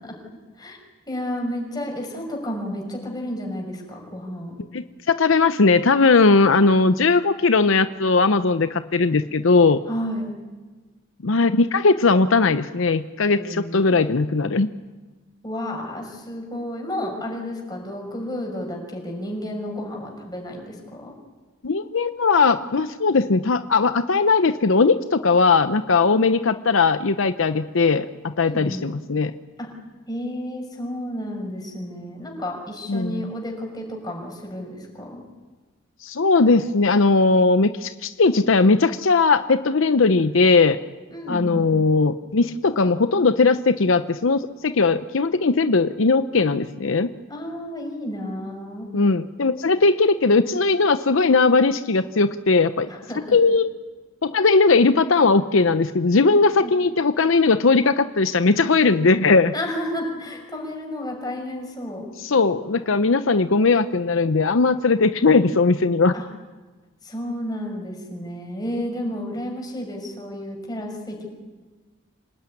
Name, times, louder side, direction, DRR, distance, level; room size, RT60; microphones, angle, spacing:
voice 1, 0.0-0.8 1.1-4.5 9.9-10.3 13.3-14.2 15.4-21.1 26.1-26.2 28.4-28.9 29.6-29.7 30.1-35.2 41.1-41.6 47.3-48.9 52.9-53.4 56.6-56.7 59.5-62.1 66.1-66.2 67.0-71.3, left 1 dB, 20° left, 1 dB, 5.9 m, -31 dB
voice 2, 4.7-9.8 11.2-14.7 21.6-29.3 32.9-33.3 36.0-40.8 41.3-47.1 48.9-52.9 53.3-53.7 54.2-59.5 62.2-66.1, left 4 dB, 70° left, 11 dB, 0.7 m, -19 dB
27.0 x 18.5 x 9.9 m, 1.3 s
head